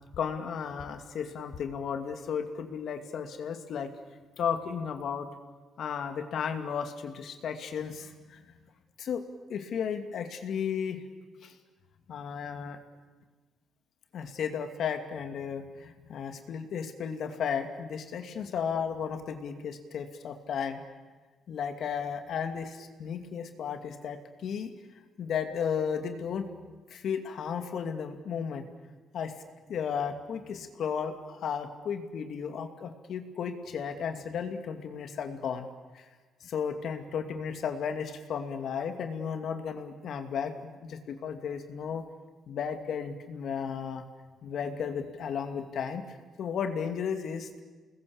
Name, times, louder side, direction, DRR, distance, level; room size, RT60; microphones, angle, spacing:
voice 1, 0.2-3.9 4.4-5.3 5.8-8.4 9.0-11.0 11.4-11.5 12.1-12.8 14.1-20.8 21.5-24.7 25.2-28.7 29.1-29.3 29.7-35.7 35.9-36.0 36.4-42.0 42.5-44.0 44.4-46.0 46.4-47.6, left 7 dB, 65° left, 7 dB, 2.4 m, -34 dB
29.5 x 20.5 x 7.2 m, 1.3 s
cardioid pair, 90°, 0 cm